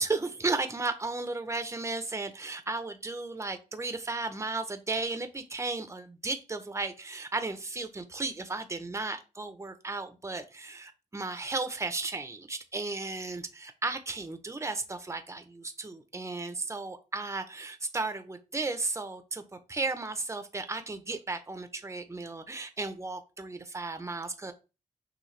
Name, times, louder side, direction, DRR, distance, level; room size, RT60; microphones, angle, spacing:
voice 1, 0.0-24.5, right 3 dB, 20° right, 9 dB, 0.8 m, -34 dB
6.3 x 2.5 x 3.3 m, 0.30 s
cardioid pair, 55°, 14 cm